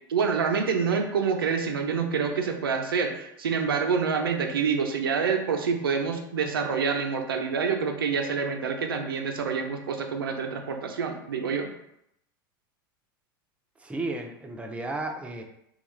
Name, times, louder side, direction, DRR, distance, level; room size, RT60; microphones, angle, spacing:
voice 1, 0.1-11.7, right 5 dB, 85° right, 4 dB, 0.5 m, -27 dB
voice 2, 13.8-15.4, right 2 dB, 10° right, 3 dB, 0.5 m, -33 dB
3.4 x 2.3 x 3.1 m, 0.78 s
hypercardioid pair, 90°, 12 cm